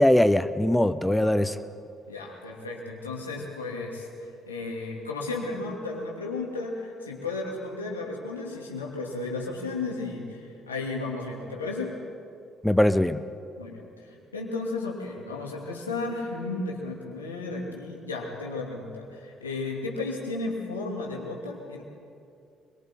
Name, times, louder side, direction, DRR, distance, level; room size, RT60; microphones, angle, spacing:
voice 1, 0.0-1.6 12.6-13.2, left 1 dB, 5° left, 12 dB, 0.8 m, -21 dB
voice 2, 2.1-4.1 4.5-12.0 13.6-21.8, left 3 dB, 85° left, -2 dB, 2.6 m, -34 dB
26.5 x 22.5 x 4.6 m, 2.5 s
figure-of-eight pair, 45°, 0 cm